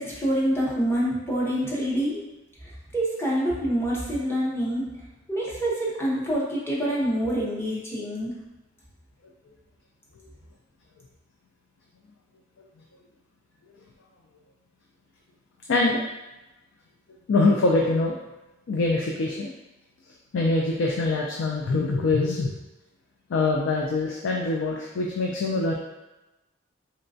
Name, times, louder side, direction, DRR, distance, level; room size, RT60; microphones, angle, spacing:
voice 1, 0.0-2.2 2.6-4.8 5.3-8.3, equal, 15° left, -6 dB, 0.8 m, -26 dB
voice 2, 15.7-16.0 17.3-18.1 18.7-19.5 20.3-22.6 23.3-25.7, left 3 dB, 80° left, -1 dB, 0.4 m, -24 dB
3.9 x 2.2 x 2.6 m, 1.0 s
head